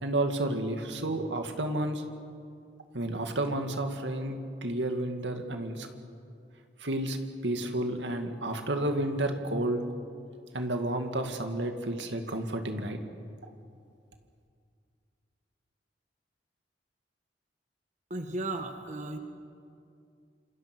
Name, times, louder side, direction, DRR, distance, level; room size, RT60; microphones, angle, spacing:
voice 1, 0.0-2.0 2.9-5.9 6.8-7.2 7.4-9.8 10.5-13.0, right 1 dB, 80° right, 5 dB, 2.3 m, -31 dB
voice 2, 18.1-19.2, right 2 dB, 45° right, 5 dB, 1.6 m, -35 dB
27.5 x 27.5 x 6.3 m, 2.4 s
head